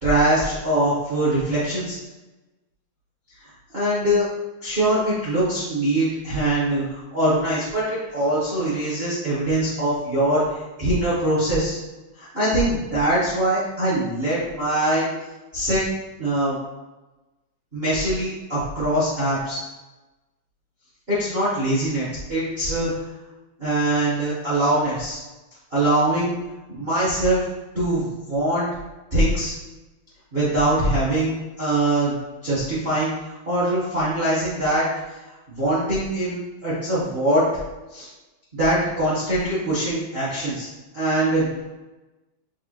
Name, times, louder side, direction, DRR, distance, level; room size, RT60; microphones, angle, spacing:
voice 1, 0.0-2.0 3.7-4.2 4.6-11.8 12.2-15.1 15.5-15.8 16.2-16.6 17.7-19.6 21.1-22.9 23.6-25.2 25.7-26.4 26.7-27.4 27.7-28.6 29.1-29.5 30.3-32.1 32.4-33.1 33.5-34.9 35.5-37.5 37.9-38.1 38.5-40.7 40.9-41.6, right 1 dB, 70° right, -10 dB, 0.5 m, -22 dB
7.0 x 2.4 x 2.9 m, 1.1 s
omnidirectional pair, 3.4 m